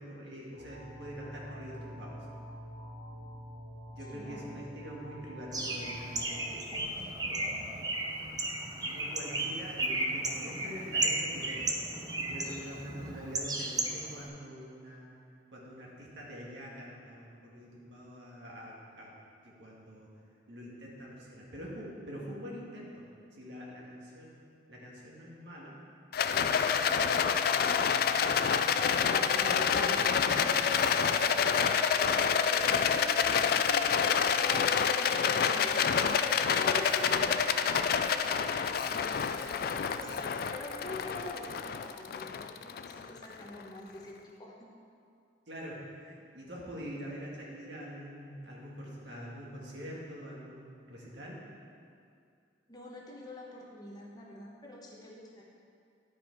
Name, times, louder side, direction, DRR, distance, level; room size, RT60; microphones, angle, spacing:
voice 1, 0.0-2.2 3.9-8.0 8.7-11.8 12.3-15.1 15.5-19.1 19.4-20.1 20.5-23.1 23.3-24.4 24.7-25.8 26.4-27.9 29.1-30.9 45.5-51.4, equal, 75° right, -4 dB, 1.7 m, -45 dB
sound 1, 0.6-6.4, equal, 45° right, 1.1 m, -47 dB
voice 2, 4.1-4.5 31.9-44.7 52.7-55.4, left 1 dB, 20° left, -3 dB, 1.0 m, -45 dB
Bird, 5.5-14.3, right 2 dB, 20° right, 0.6 m, -34 dB
Rattle, 26.1-43.5, left 7 dB, 55° left, 0.3 m, -28 dB
10.5 x 5.0 x 4.6 m, 2.4 s
head